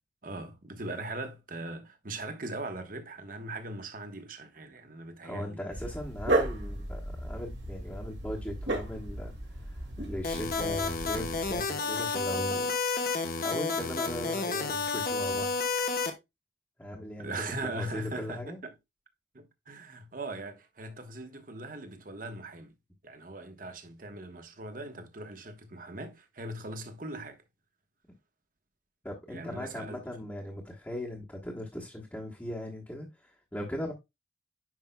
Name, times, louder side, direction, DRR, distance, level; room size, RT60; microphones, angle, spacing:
voice 1, 0.2-5.6 17.2-18.7 19.3-22.7 23.0-27.4 29.3-30.0, right 2 dB, 50° right, 1.1 m, -40 dB
voice 2, 5.2-12.8 13.4-15.5 16.8-17.3 17.6-18.6 29.0-33.9, equal, 10° left, 1.1 m, -39 dB
Dog, 5.7-11.6, right 1 dB, 75° right, 2.0 m, -34 dB
sound 1, 10.2-16.1, left 4 dB, 50° left, 1.0 m, -30 dB
9.5 x 5.3 x 2.2 m
head